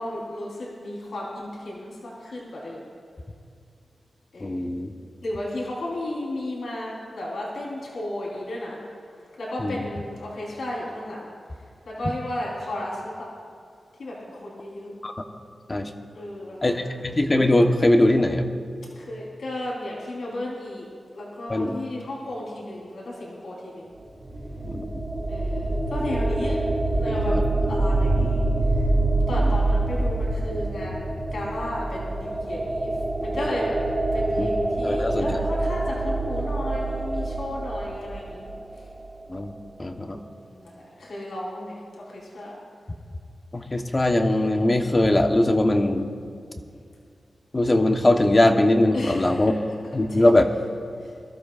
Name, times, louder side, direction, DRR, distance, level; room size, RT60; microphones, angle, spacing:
voice 1, 0.0-2.9 4.3-4.6 5.2-8.8 9.4-11.3 11.8-13.3 14.0-14.9 16.1-16.9 19.0-20.9 21.1-23.9 25.3-27.4 27.7-28.5 29.3-32.9 33.2-33.8 34.1-38.5 40.1-42.6 48.9-49.5 50.1-50.2 51.0-51.1, left 1 dB, 85° left, -5 dB, 4.0 m, -34 dB
voice 2, 4.4-4.9 9.6-9.8 15.0-15.1 15.7-15.9 16.6-18.5 21.5-21.7 24.6-25.0 27.3-27.4 28.2-28.3 29.3-29.5 34.4-34.5 34.8-35.4 39.3-39.5 39.8-40.2 43.5-46.1 47.5-49.5 49.9-50.5, left 1 dB, 35° left, 4 dB, 1.1 m, -21 dB
sound 1, 24.0-38.8, right 2 dB, 40° right, 2.7 m, -25 dB
23.5 x 13.5 x 2.5 m, 2.3 s
cardioid pair, 65°, 0 cm